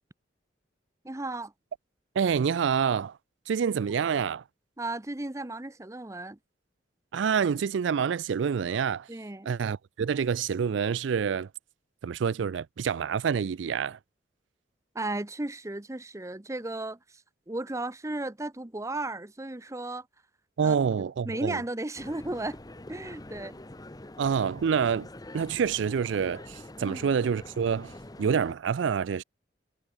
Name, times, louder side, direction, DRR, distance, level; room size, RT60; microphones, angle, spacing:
voice 1, 1.0-1.5 4.8-6.4 9.1-9.5 14.9-17.0 17.5-20.1 20.6-20.8 21.2-22.6 22.9-23.6 26.8-27.1, right 2 dB, 15° right, 0.8 m, -35 dB
voice 2, 2.2-3.2 3.5-4.4 7.1-9.1 9.5-11.5 12.0-14.0 20.6-21.6 24.2-25.1 25.3-27.9 28.2-29.2, right 6 dB, 80° right, 0.4 m, -27 dB
sound 1, 21.9-28.5, left 1 dB, 20° left, 1.0 m, -45 dB
head